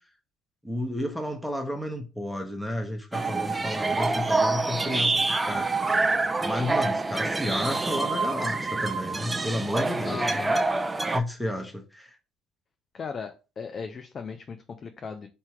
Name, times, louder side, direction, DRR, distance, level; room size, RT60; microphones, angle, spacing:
voice 1, 0.6-5.7 6.4-10.2 11.1-12.2, left 1 dB, ahead, 1.0 m, -32 dB
sound 1, 3.1-11.2, right 3 dB, 20° right, 0.5 m, -26 dB
voice 2, 10.1-10.6 12.9-15.3, left 5 dB, 45° left, 0.5 m, -36 dB
3.5 x 2.8 x 4.6 m
hypercardioid pair, 60°, 0 cm